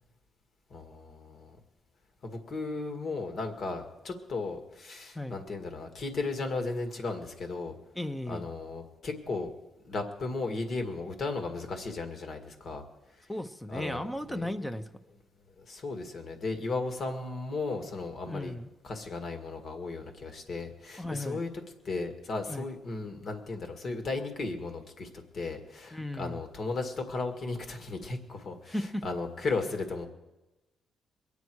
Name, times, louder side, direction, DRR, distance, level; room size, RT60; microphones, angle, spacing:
voice 1, 0.7-1.6 2.2-7.8 8.3-9.5 9.8-12.8 13.7-14.0 14.3-14.5 15.6-18.5 18.8-21.5 21.8-30.1, left 3 dB, 50° left, 5 dB, 1.9 m, -35 dB
voice 2, 7.9-8.5 13.3-14.9 18.3-18.7 21.0-21.4 22.5-22.7 25.9-26.4 28.7-29.0, left 1 dB, 5° left, 10 dB, 0.9 m, -35 dB
23.0 x 9.5 x 4.7 m, 1.0 s
cardioid pair, 90°, 0 cm